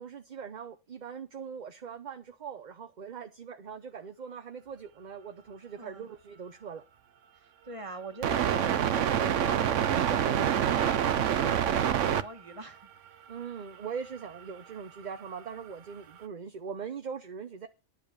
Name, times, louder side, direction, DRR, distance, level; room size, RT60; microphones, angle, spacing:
voice 1, 0.0-6.8 13.3-17.7, right 6 dB, 45° right, 0.8 m, -41 dB
voice 2, 5.8-6.1 7.6-12.9, right 2 dB, 25° right, 1.5 m, -42 dB
sound 1, 8.2-12.2 12.5-12.6 13.8-14.0 14.4-14.5 15.0-15.1, right 9 dB, 80° right, 1.1 m, -26 dB
11.0 x 7.5 x 6.7 m
omnidirectional pair, 1.3 m